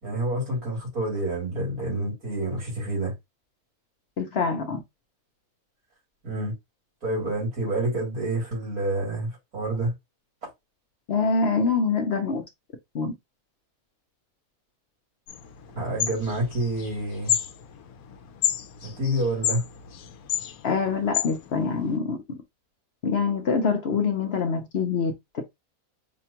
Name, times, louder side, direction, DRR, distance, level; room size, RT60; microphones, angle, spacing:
voice 1, 0.0-3.1 6.2-6.5 7.0-9.9 15.7-17.3 18.8-19.6, right 1 dB, 85° right, 3.2 m, -28 dB
voice 2, 4.2-4.8 11.1-12.4 12.9-13.1 20.6-22.2 23.0-25.4, left 5 dB, 55° left, 0.8 m, -25 dB
sound 1, 15.3-22.0, left 10 dB, 85° left, 1.1 m, -31 dB
5.0 x 2.3 x 2.8 m
omnidirectional pair, 1.5 m